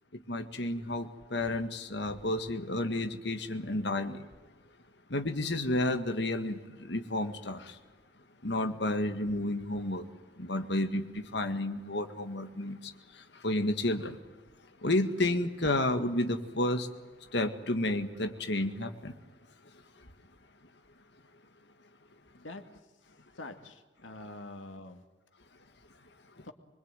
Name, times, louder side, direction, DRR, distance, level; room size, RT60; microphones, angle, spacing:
voice 1, 0.3-4.3 5.1-7.8 8.4-10.1 10.4-14.2 14.8-16.9 17.3-19.2 19.7-20.1 26.4-26.5, left 1 dB, 65° left, 1.9 m, -31 dB
voice 2, 23.4-25.0 26.4-26.5, left 2 dB, 90° left, 2.4 m, -45 dB
25.0 x 22.5 x 9.1 m
head